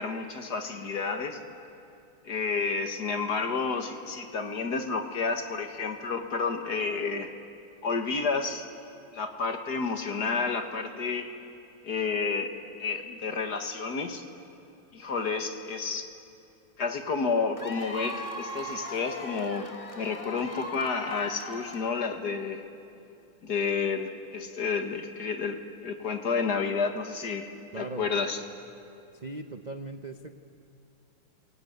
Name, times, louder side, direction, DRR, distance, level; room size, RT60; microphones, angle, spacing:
voice 1, 0.0-1.4 2.3-7.3 7.8-8.7 9.1-11.3 11.8-12.5 12.8-14.2 14.9-16.1 16.8-22.6 23.4-27.5 27.8-28.4, left 4 dB, 50° left, 6 dB, 2.0 m, -30 dB
Cheering / Applause / Crowd, 17.6-22.3, equal, 20° left, 1.4 m, -40 dB
voice 2, 27.7-28.1 29.1-30.3, right 2 dB, 50° right, 6 dB, 0.5 m, -39 dB
28.5 x 22.0 x 9.6 m, 2.7 s
omnidirectional pair, 2.3 m